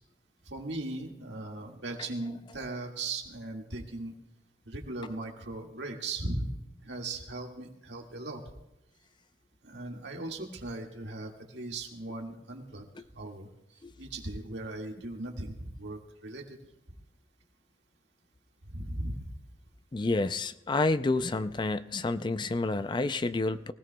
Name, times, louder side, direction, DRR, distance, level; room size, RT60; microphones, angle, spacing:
voice 1, 0.5-4.1 4.7-6.5 6.8-8.4 9.6-12.8 13.1-13.5 14.0-16.4 18.7-19.3, right 2 dB, 70° right, 1 dB, 1.9 m, -38 dB
voice 2, 19.9-23.7, left 3 dB, 25° left, 12 dB, 0.4 m, -29 dB
23.5 x 16.5 x 2.3 m, 0.86 s
head